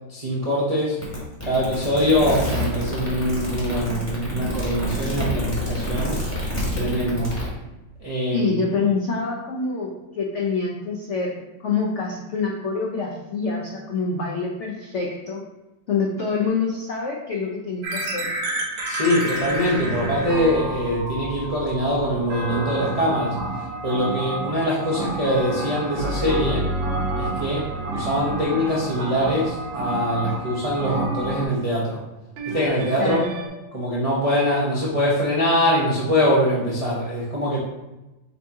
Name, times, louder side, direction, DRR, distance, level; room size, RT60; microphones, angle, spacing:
voice 1, 0.1-1.0 1.4-6.2 6.7-7.3 8.0-8.5 18.8-23.4 23.8-26.7 27.2-27.6 27.9-32.0 32.5-33.2 33.7-37.6, equal, 45° right, -7 dB, 0.4 m, -23 dB
sound 1, 1.0-7.5, left 1 dB, 10° left, 0.9 m, -28 dB
voice 2, 8.3-11.3 11.6-15.4 15.9-18.2 33.0-33.3, left 4 dB, 75° left, -2 dB, 0.6 m, -26 dB
sound 2, 17.8-31.5, right 2 dB, 65° right, 1.2 m, -30 dB
sound 3, 26.0-30.0 32.4-33.5, right 1 dB, 85° right, 1.6 m, -31 dB
5.5 x 2.8 x 3.5 m, 1.0 s
omnidirectional pair, 2.0 m